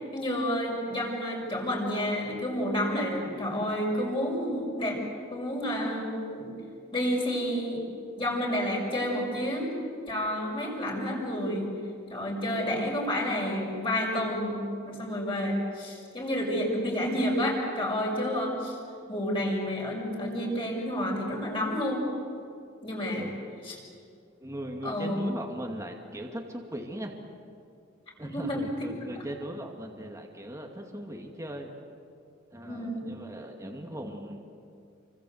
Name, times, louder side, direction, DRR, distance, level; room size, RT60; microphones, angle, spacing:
voice 1, 0.1-5.0 5.3-6.5 6.9-7.8 8.2-9.7 10.1-11.8 12.1-18.8 19.1-22.0 22.8-23.3 23.6-23.8 24.8-25.2 28.2-28.6 32.6-33.1, equal, 25° left, -2 dB, 6.3 m, -30 dB
voice 2, 24.4-27.2 28.2-31.7 32.5-34.5, equal, 15° right, 1 dB, 2.3 m, -39 dB
29.0 x 25.0 x 8.0 m, 2.4 s
head